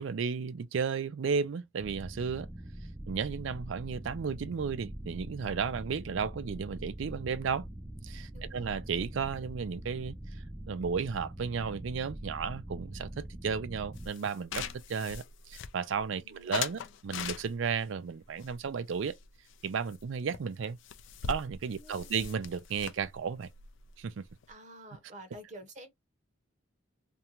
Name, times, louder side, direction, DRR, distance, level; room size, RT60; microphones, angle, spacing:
voice 1, 0.0-2.5 3.1-7.7 8.0-10.2 10.7-19.2 19.6-20.8 21.3-23.5 24.0-24.3, right 6 dB, 70° right, 0.4 m, -34 dB
sound 1, 1.8-14.1, right 1 dB, 15° right, 0.5 m, -43 dB
voice 2, 8.3-8.8 16.2-17.0 21.8-22.3 24.5-25.9, right 1 dB, 40° right, 0.8 m, -50 dB
sound 2, 14.0-16.1 16.5-17.8 18.4-19.6 19.9-20.0 20.3-20.4 20.6-24.5, left 7 dB, 65° left, 0.4 m, -41 dB
2.5 x 2.2 x 2.8 m
head